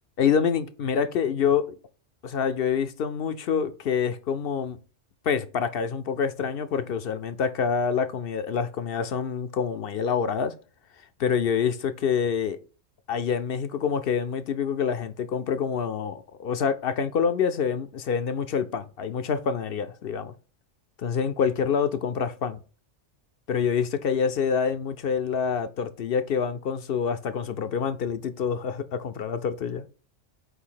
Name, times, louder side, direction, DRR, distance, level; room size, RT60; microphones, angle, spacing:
voice 1, 0.2-1.8 2.2-4.8 5.3-10.5 11.2-12.6 13.1-20.3 21.0-22.6 23.5-29.9, left 6 dB, 60° left, 0.7 m, -26 dB
8.2 x 2.8 x 5.6 m
omnidirectional pair, 1.3 m